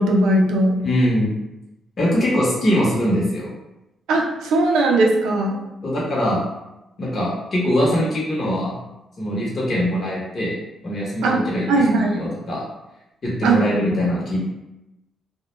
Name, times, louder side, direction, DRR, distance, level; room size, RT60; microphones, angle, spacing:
voice 1, 0.0-0.8 4.1-5.6 11.2-12.2 13.4-13.6, right 2 dB, 90° right, 0 dB, 0.4 m, -19 dB
voice 2, 0.8-1.4 2.0-3.5 5.8-6.4 7.0-8.7 9.2-10.6 10.8-11.7 11.9-12.6 13.2-14.5, equal, 45° left, -6 dB, 0.9 m, -22 dB
2.3 x 2.1 x 3.0 m, 0.93 s
cardioid pair, 75°, 0 cm